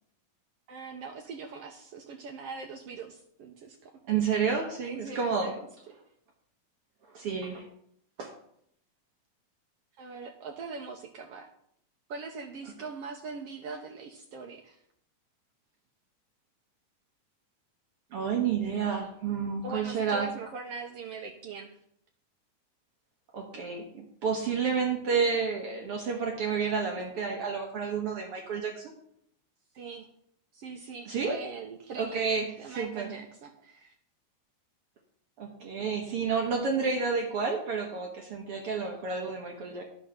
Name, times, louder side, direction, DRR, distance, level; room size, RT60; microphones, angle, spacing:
voice 1, 0.7-4.2 4.8-6.0 10.0-11.5 12.1-14.8 19.6-21.8 29.7-30.1 30.5-33.9, right 4 dB, 75° right, 3 dB, 1.4 m, -42 dB
voice 2, 4.1-5.5 7.1-7.7 8.2-8.3 18.1-20.3 23.3-28.9 31.1-31.4 32.0-33.1 35.4-39.8, right 5 dB, 60° right, 1 dB, 1.7 m, -30 dB
11.0 x 6.5 x 5.7 m, 0.69 s
omnidirectional pair, 3.7 m